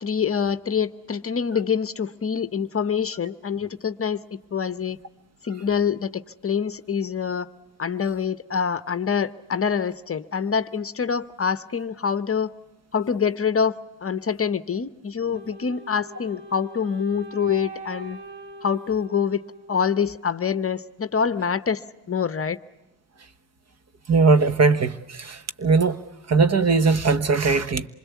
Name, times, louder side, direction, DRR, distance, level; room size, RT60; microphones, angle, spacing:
voice 1, 0.0-4.2 4.5-5.0 5.4-7.5 7.8-12.5 12.9-18.2 18.6-19.4 19.7-22.6, left 6 dB, 30° left, 0.9 m, -25 dB
Wind instrument woodwind instrument, 15.3-20.4, right 2 dB, 60° right, 2.0 m, -42 dB
voice 2, 24.1-26.0 26.3-27.9, right 4 dB, 35° right, 1.3 m, -20 dB
27.0 x 21.0 x 8.4 m
cardioid pair, 95°, 44 cm